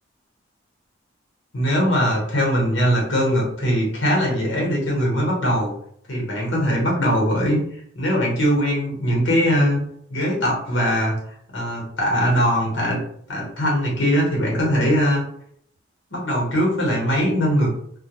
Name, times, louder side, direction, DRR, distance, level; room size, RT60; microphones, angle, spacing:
voice 1, 1.5-5.7 6.1-7.6 7.9-9.8 10.1-11.2 11.5-13.0 13.3-15.2 16.1-17.7, equal, 70° left, -2 dB, 1.0 m, -21 dB
2.2 x 2.2 x 2.9 m, 0.68 s
head